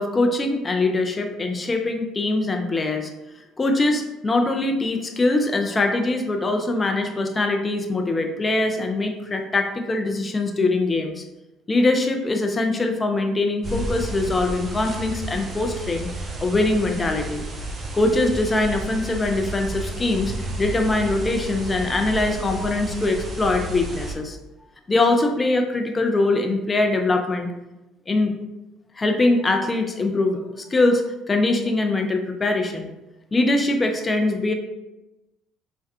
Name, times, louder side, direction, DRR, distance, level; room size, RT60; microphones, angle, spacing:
voice 1, 0.0-3.1 3.6-11.2 11.7-16.1 16.4-17.4 17.9-24.4 24.9-27.5 28.1-28.3 29.0-30.4 30.7-32.9 33.3-34.5, left 2 dB, 25° left, 4 dB, 0.5 m, -22 dB
sound 1, 13.6-24.1, right 2 dB, 35° right, 0.8 m, -32 dB
3.4 x 2.2 x 2.7 m, 1.0 s
hypercardioid pair, 60°, 0 cm